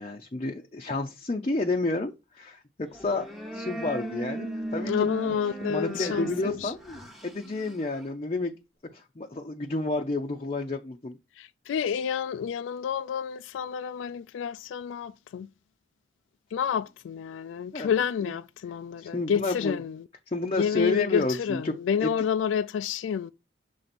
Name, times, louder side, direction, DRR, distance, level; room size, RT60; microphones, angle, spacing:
voice 1, 0.0-5.1 5.7-8.5 8.9-11.2 17.7-17.9 18.2-18.3 19.0-19.8 20.3-21.7 22.0-22.1, left 2 dB, 30° left, 0.5 m, -30 dB
sound 1, 2.9-8.1, right 1 dB, ahead, 0.9 m, -37 dB
voice 2, 4.8-6.7 11.4-15.5 16.5-20.0 20.6-23.3, left 7 dB, 90° left, 0.3 m, -29 dB
6.7 x 3.4 x 4.2 m
head